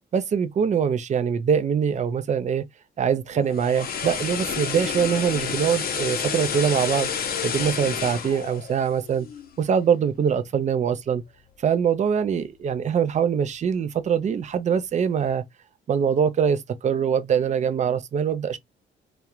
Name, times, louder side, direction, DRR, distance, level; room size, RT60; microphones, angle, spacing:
voice 1, 0.1-2.6 3.0-7.1 7.4-9.3 9.6-11.2 11.6-15.4 15.9-18.6, right 7 dB, 35° right, 0.4 m, -23 dB
sound 1, 3.4-9.6 9.9-10.1, left 7 dB, 50° left, 0.6 m, -30 dB
2.3 x 2.0 x 2.9 m
cardioid pair, 90°, 20 cm